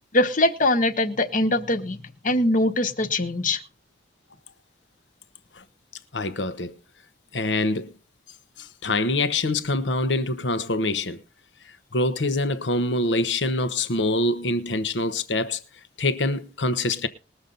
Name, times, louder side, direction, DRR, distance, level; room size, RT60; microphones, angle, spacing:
voice 1, 0.1-2.0 2.2-3.6, left 1 dB, 50° left, 1.2 m, -22 dB
voice 2, 6.1-6.7 7.3-7.9 8.6-11.2 11.9-15.6 16.0-17.1, left 2 dB, 85° left, 1.1 m, -25 dB
21.0 x 7.1 x 4.0 m
head